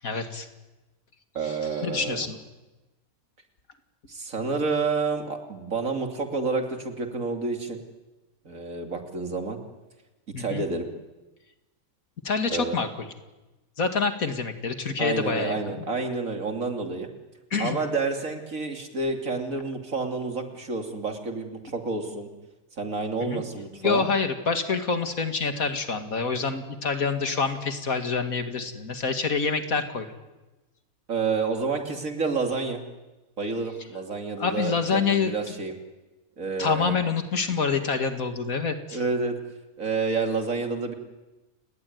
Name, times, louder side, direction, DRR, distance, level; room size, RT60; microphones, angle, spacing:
voice 1, 0.0-0.5 1.4-2.4 10.3-10.6 12.2-13.1 13.8-15.8 17.5-17.8 23.2-23.4 23.8-30.1 34.4-35.3 36.6-39.0, left 5 dB, 70° left, 7 dB, 2.5 m, -27 dB
voice 2, 1.3-2.3 4.1-7.8 8.4-9.6 10.4-10.8 12.5-12.8 15.0-17.1 17.6-22.3 22.8-24.0 31.1-32.8 33.4-35.7 36.4-37.0 38.9-39.4 39.8-40.9, right 4 dB, 65° right, 4 dB, 3.1 m, -29 dB
29.5 x 19.5 x 9.5 m, 1.1 s
omnidirectional pair, 1.5 m